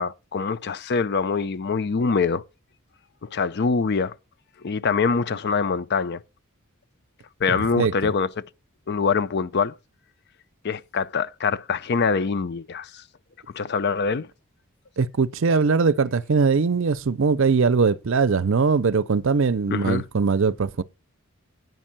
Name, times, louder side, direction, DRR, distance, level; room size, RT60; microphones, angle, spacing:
voice 1, 0.0-2.4 3.3-4.1 4.6-6.2 7.4-8.3 8.9-9.7 10.6-13.0 13.5-14.3 19.7-20.0, left 5 dB, 50° left, 0.5 m, -24 dB
voice 2, 7.5-7.9 15.0-20.8, right 5 dB, 60° right, 0.5 m, -21 dB
9.4 x 5.4 x 7.4 m
head